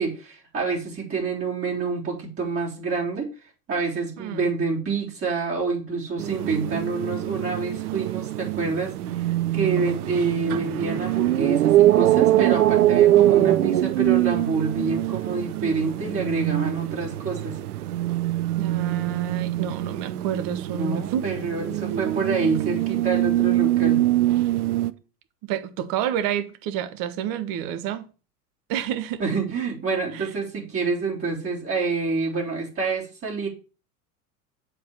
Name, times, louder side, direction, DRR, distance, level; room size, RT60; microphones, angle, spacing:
voice 1, 0.0-3.3 3.7-9.3 9.5-17.6 20.7-24.1 29.2-33.5, right 4 dB, 25° right, 3.5 m, -27 dB
voice 2, 4.2-4.5 18.6-21.2 21.9-22.2 22.6-22.8 25.4-28.0 28.7-29.2 30.1-30.3, right 9 dB, 45° right, 1.4 m, -29 dB
sound 1, 6.2-24.9, right 14 dB, 65° right, 0.7 m, -23 dB
7.9 x 4.6 x 7.2 m
figure-of-eight pair, 90°, 48 cm